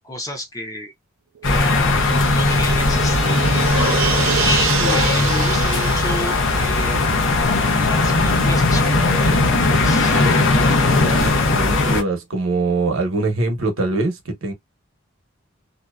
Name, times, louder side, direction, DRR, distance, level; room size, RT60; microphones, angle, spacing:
voice 1, 0.0-0.9 1.4-3.7 4.3-7.4 7.8-10.1, left 1 dB, 15° left, 0.7 m, -31 dB
sound 1, 1.4-12.0, left 3 dB, 65° left, 0.7 m, -18 dB
sound 2, 1.4-8.4 8.7-8.8, right 10 dB, 65° right, 0.3 m, -28 dB
voice 2, 10.8-14.5, right 3 dB, 85° right, 0.9 m, -23 dB
2.7 x 2.2 x 2.3 m
head